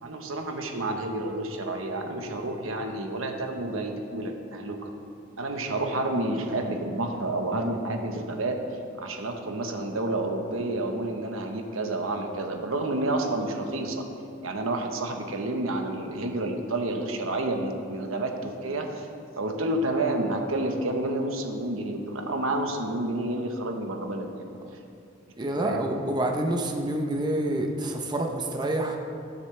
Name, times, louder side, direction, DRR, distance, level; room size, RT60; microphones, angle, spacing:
voice 1, 0.0-4.9 5.4-8.6 9.0-14.0 14.4-19.1 19.4-24.4 25.6-25.9, right 2 dB, 90° right, 3 dB, 1.1 m, -29 dB
voice 2, 25.4-29.0, right 1 dB, 20° right, 2 dB, 0.8 m, -27 dB
20.0 x 7.2 x 3.3 m, 2.5 s
head